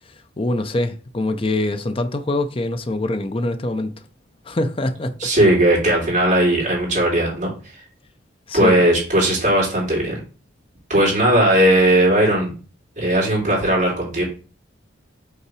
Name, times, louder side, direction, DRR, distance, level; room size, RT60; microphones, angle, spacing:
voice 1, 0.4-4.0 4.5-5.3 8.5-8.8, left 2 dB, 25° left, 0.5 m, -24 dB
voice 2, 5.2-7.8 8.5-10.2 10.9-12.5 13.0-14.2, right 1 dB, 40° right, 3.0 m, -17 dB
5.5 x 3.9 x 4.8 m
head